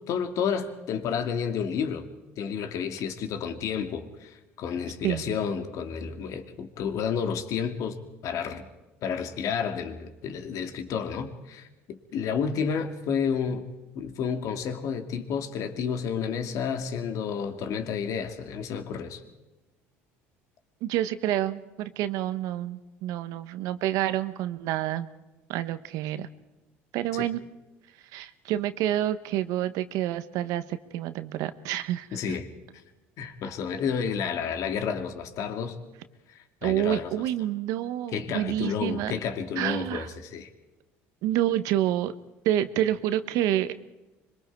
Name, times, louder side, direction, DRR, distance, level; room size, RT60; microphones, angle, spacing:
voice 1, 0.1-2.1 2.4-8.0 8.2-8.7 9.0-13.7 13.9-19.2 27.1-27.3 32.1-32.5 33.2-35.8 36.6-37.1 38.1-40.5, left 7 dB, 60° left, 6 dB, 2.4 m, -31 dB
voice 2, 5.0-5.3 20.8-25.1 25.5-26.3 26.9-27.4 28.1-32.4 36.6-39.1 39.6-40.1 41.2-42.1 42.4-43.7, right 12 dB, 70° right, 12 dB, 1.2 m, -28 dB
25.5 x 22.5 x 4.7 m, 1.0 s
hypercardioid pair, 75°, 6 cm